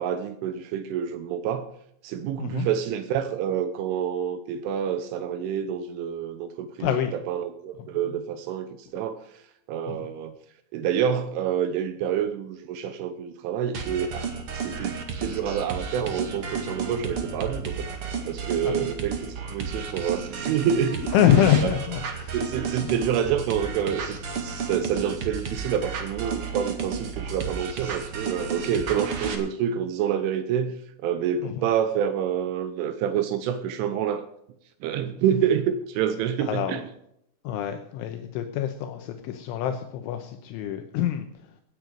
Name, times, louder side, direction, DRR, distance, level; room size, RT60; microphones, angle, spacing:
voice 1, 0.0-1.7 2.0-9.4 9.7-10.3 10.7-17.9 18.3-21.1 22.3-34.3 34.8-36.8, right 8 dB, 80° right, 10 dB, 3.3 m, -28 dB
voice 2, 6.8-7.1 9.9-10.1 18.6-18.8 21.1-22.4 31.4-31.6 36.4-36.8 37.4-41.3, left 10 dB, 80° left, 6 dB, 3.3 m, -25 dB
sound 1, 13.7-29.4, right 5 dB, 60° right, 1.5 m, -32 dB
18.0 x 9.3 x 5.2 m, 0.76 s
omnidirectional pair, 5.7 m